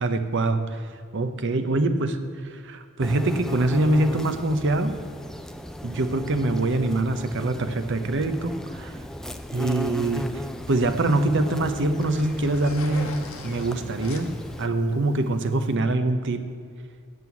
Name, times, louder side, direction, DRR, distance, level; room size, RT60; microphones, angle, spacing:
voice 1, 0.0-0.8 1.1-2.2 2.5-4.9 5.8-9.0 9.5-13.2 13.4-14.3 14.6-16.5, right 2 dB, 55° right, 9 dB, 0.8 m, -24 dB
sound 1, 3.0-14.7, equal, ahead, 0.3 m, -37 dB
Zipper (clothing), 8.9-15.8, left 3 dB, 70° left, 1.2 m, -45 dB
7.8 x 7.6 x 8.3 m, 2.3 s
head